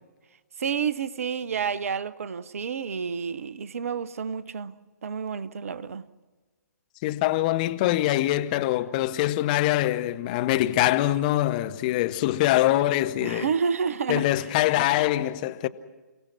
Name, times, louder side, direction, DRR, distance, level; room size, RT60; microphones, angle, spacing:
voice 1, 0.6-4.7 5.0-6.1 13.2-14.3, right 6 dB, 50° right, 0.8 m, -29 dB
voice 2, 7.0-13.5 14.1-15.7, left 15 dB, 25° left, 0.6 m, -24 dB
29.5 x 17.0 x 6.1 m
figure-of-eight pair, 130°, 10 cm